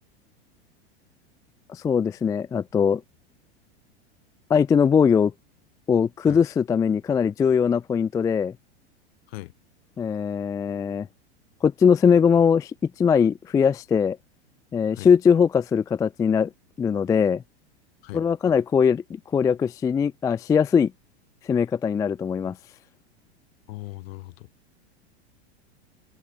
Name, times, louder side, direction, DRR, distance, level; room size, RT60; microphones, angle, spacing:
voice 1, 1.7-3.0 4.5-5.3 5.9-8.5 10.0-11.1 11.6-12.7 13.0-14.2 14.7-16.5 16.8-17.4 18.1-20.9 21.5-22.6, left 6 dB, 10° left, 0.3 m, -21 dB
voice 2, 23.7-24.5, left 20 dB, 65° left, 6.7 m, -38 dB
hypercardioid pair, 105°, 33 cm